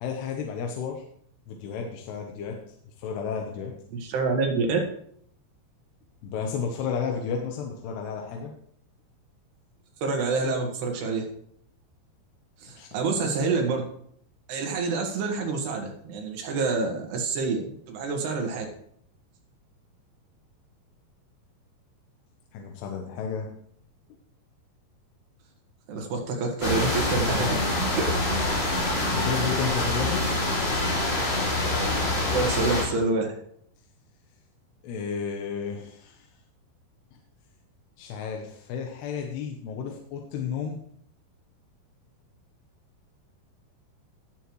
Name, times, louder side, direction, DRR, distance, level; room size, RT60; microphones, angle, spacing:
voice 1, 0.0-1.0 1.5-2.6 3.0-3.7 6.2-8.5 12.8-13.3 22.5-23.5 27.3-27.7 29.1-30.2 34.8-36.3 38.0-40.8, left 6 dB, 85° left, 2 dB, 3.1 m, -32 dB
voice 2, 3.9-4.8 10.0-11.3 12.6-13.8 14.5-18.7 25.9-27.5 27.9-28.1 32.3-33.4, right 4 dB, 85° right, 2 dB, 3.8 m, -27 dB
sound 1, 26.6-32.9, left 2 dB, 30° left, 2.9 m, -25 dB
18.0 x 7.2 x 3.1 m, 0.66 s
omnidirectional pair, 4.6 m